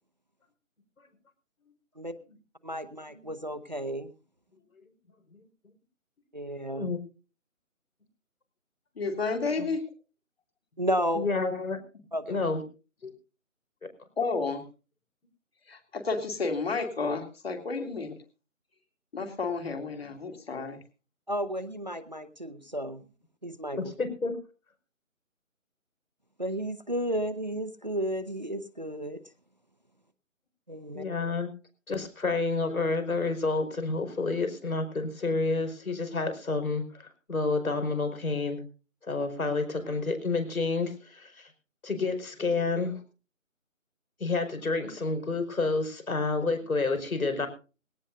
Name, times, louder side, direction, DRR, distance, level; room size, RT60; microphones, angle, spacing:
voice 1, 2.6-4.1 6.3-6.9 10.8-11.3 12.1-12.4 21.3-23.0 23.4-23.8 26.4-29.2 30.7-31.0, equal, 35° right, 13 dB, 0.7 m, -32 dB
voice 2, 9.0-9.8 14.2-14.6 15.7-18.1 19.1-20.8, left 4 dB, 45° left, 4 dB, 2.8 m, -31 dB
voice 3, 11.1-11.8 12.3-12.6 23.8-24.3 30.9-31.5 31.9-38.6 39.1-41.5 41.8-43.0 44.2-47.5, left 3 dB, 85° left, 7 dB, 5.1 m, -29 dB
19.5 x 17.5 x 2.6 m, 0.34 s
figure-of-eight pair, 175°, 41 cm